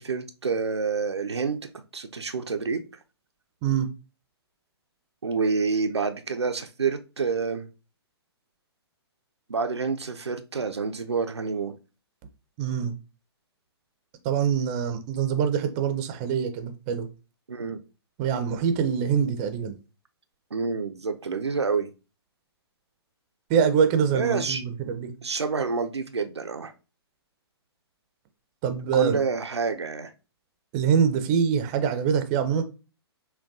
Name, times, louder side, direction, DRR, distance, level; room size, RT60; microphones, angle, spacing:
voice 1, 0.0-2.8 5.2-7.7 9.5-11.7 17.5-17.8 20.5-21.9 24.1-24.6 25.2-26.7 28.9-30.1, right 5 dB, 80° right, 0.4 m, -28 dB
voice 2, 12.6-13.0 14.2-17.1 18.2-19.8 23.5-25.1 28.6-29.2 30.7-32.6, right 7 dB, 25° right, 0.5 m, -24 dB
5.8 x 2.2 x 2.6 m
figure-of-eight pair, 120°, 14 cm